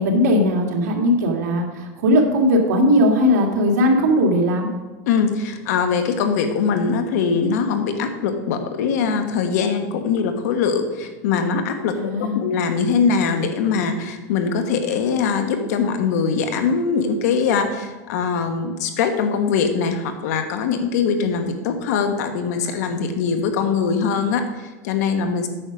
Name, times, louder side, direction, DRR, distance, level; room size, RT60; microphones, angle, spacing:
voice 1, 0.0-4.7 11.9-12.4, equal, 80° right, 1 dB, 1.9 m, -18 dB
voice 2, 5.1-24.4 24.8-25.5, left 5 dB, 75° left, 7 dB, 1.2 m, -22 dB
9.0 x 6.3 x 5.1 m, 1.2 s
supercardioid pair, 145°, 9 cm